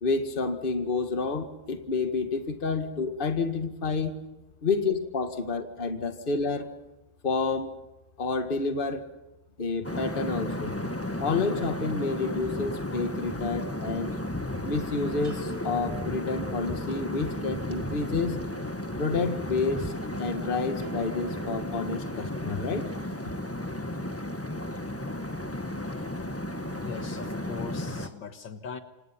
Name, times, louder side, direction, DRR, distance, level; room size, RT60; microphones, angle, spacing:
voice 1, 0.0-4.1 4.6-6.7 7.2-7.7 8.2-9.0 9.6-10.8 11.2-14.1 14.6-18.4 19.0-19.9 20.2-22.9, left 4 dB, 25° left, 7 dB, 1.8 m, -29 dB
sound 1, 9.8-28.1, left 1 dB, 10° left, 1.1 m, -34 dB
sound 2, 15.2-21.0, left 3 dB, 30° right, 2.5 m, -48 dB
sound 3, 20.8-23.2, right 9 dB, 85° right, 3.0 m, -48 dB
voice 2, 26.8-28.8, left 6 dB, 65° left, 8 dB, 2.1 m, -40 dB
27.5 x 26.5 x 5.8 m, 1.0 s
omnidirectional pair, 2.3 m